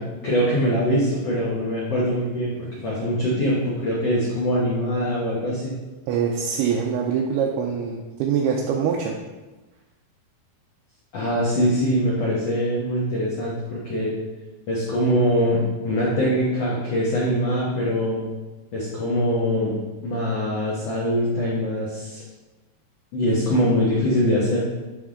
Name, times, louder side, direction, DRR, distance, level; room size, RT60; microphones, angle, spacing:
voice 1, 0.0-5.7 11.1-14.1 14.7-18.2 18.7-22.2 23.1-24.6, equal, 80° left, -7 dB, 1.4 m, -23 dB
voice 2, 6.1-9.2, right 7 dB, 85° right, 0 dB, 2.5 m, -24 dB
9.3 x 3.6 x 3.6 m, 1.2 s
omnidirectional pair, 4.7 m